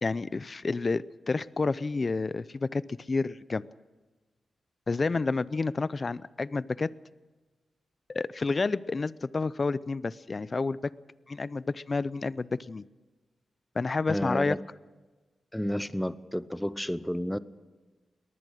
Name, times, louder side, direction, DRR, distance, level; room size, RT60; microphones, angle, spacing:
voice 1, 0.0-3.6 4.9-6.9 8.1-10.9 11.3-12.8 13.7-14.6, left 3 dB, 35° left, 0.6 m, -30 dB
voice 2, 14.1-14.6 15.5-17.4, equal, 5° left, 0.8 m, -31 dB
22.0 x 19.5 x 6.5 m
cardioid pair, 90°, 0 cm